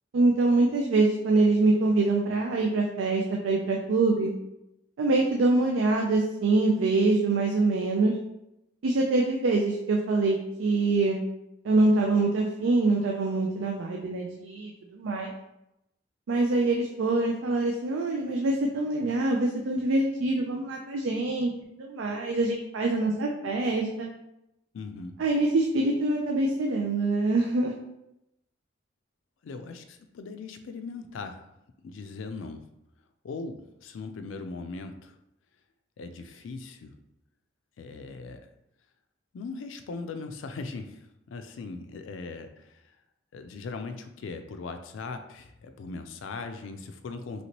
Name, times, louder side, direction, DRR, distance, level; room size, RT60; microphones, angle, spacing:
voice 1, 0.1-4.3 5.0-8.1 8.8-11.2 11.6-15.3 16.3-21.5 21.8-24.1 25.2-27.7, right 2 dB, 85° right, 0 dB, 0.4 m, -25 dB
voice 2, 24.7-25.2 29.4-31.5 31.8-32.6 33.2-35.2 36.0-37.0 37.8-38.4 39.3-43.0 43.3-47.4, left 4 dB, 80° left, 7 dB, 0.4 m, -39 dB
3.0 x 2.9 x 2.9 m, 0.87 s
head